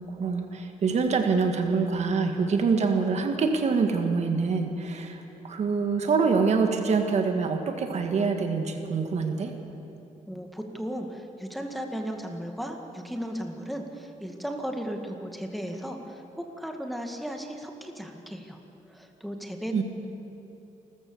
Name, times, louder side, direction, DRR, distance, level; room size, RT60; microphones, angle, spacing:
voice 1, 0.0-9.5 19.7-19.8, right 4 dB, 55° right, 5 dB, 1.9 m, -25 dB
voice 2, 10.3-18.6 18.9-19.8, equal, ahead, 3 dB, 2.0 m, -36 dB
28.0 x 14.0 x 7.2 m, 2.8 s
cardioid pair, 115°, 14 cm